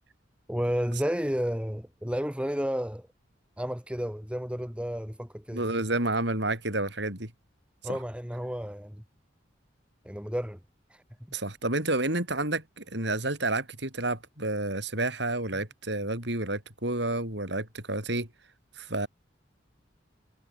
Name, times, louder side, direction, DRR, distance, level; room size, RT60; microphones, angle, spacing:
voice 1, 0.5-3.1 3.6-5.6 7.8-9.0 10.1-10.6, equal, 5° right, 3.7 m, -31 dB
voice 2, 5.5-7.3 7.8-8.0 11.3-18.3 18.8-19.1, right 2 dB, 65° right, 7.6 m, -30 dB
head